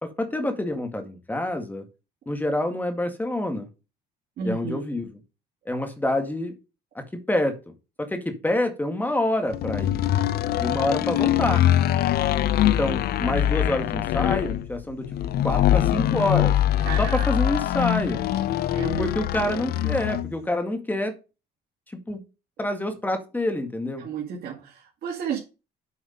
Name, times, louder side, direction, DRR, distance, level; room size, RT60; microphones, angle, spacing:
voice 1, 0.0-1.9 2.3-3.7 4.4-5.2 5.7-6.5 7.0-7.6 8.0-10.0 10.6-11.6 12.6-15.1 15.4-16.6 17.0-18.2 19.0-21.2 22.1-22.2 22.6-24.0, left 1 dB, 10° left, 1.9 m, -27 dB
voice 2, 4.4-4.8 16.8-17.3 18.7-19.1 24.0-25.4, right 6 dB, 65° right, 2.2 m, -32 dB
sound 1, 9.5-20.3, left 12 dB, 65° left, 0.6 m, -23 dB
8.4 x 4.9 x 5.3 m
cardioid pair, 110°, 17 cm